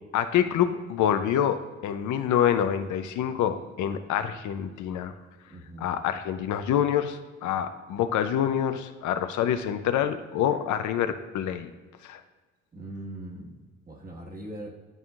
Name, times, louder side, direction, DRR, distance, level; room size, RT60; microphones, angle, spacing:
voice 1, 0.1-5.1 5.8-11.7 12.0-12.2, left 9 dB, 75° left, 9 dB, 0.5 m, -26 dB
voice 2, 5.5-5.9 12.7-13.5 13.8-14.7, right 1 dB, 30° right, -1 dB, 1.5 m, -40 dB
11.0 x 3.7 x 2.4 m, 1.3 s
cardioid pair, 90°, 30 cm